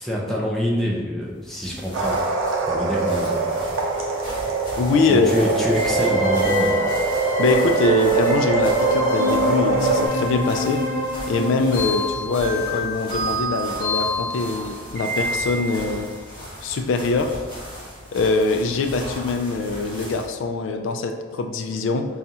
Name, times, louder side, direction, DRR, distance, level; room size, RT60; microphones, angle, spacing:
voice 1, 0.0-2.4 2.7-3.5 5.0-6.9, equal, ahead, -4 dB, 0.5 m, -26 dB
sound 1, 1.3-20.4, equal, 25° left, 1.2 m, -38 dB
sound 2, 1.9-10.1, right 3 dB, 75° right, 0.6 m, -24 dB
voice 2, 4.8-5.3 7.4-10.8 11.3-16.1 16.6-17.4 18.1-22.1, left 3 dB, 65° left, 5 dB, 0.3 m, -23 dB
sound 3, 5.7-15.9, right 1 dB, 35° right, 1.0 m, -25 dB
5.3 x 2.4 x 2.8 m, 1.5 s
head